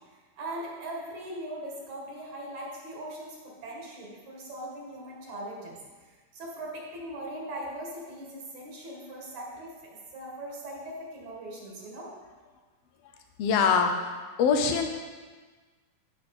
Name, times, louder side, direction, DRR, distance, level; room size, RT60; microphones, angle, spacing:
voice 1, 0.4-9.7 10.1-12.1, right 1 dB, 60° right, -2 dB, 3.1 m, -40 dB
voice 2, 13.4-14.1 14.4-14.9, left 6 dB, 75° left, 4 dB, 1.5 m, -23 dB
14.5 x 6.1 x 4.3 m, 1.4 s
omnidirectional pair, 3.8 m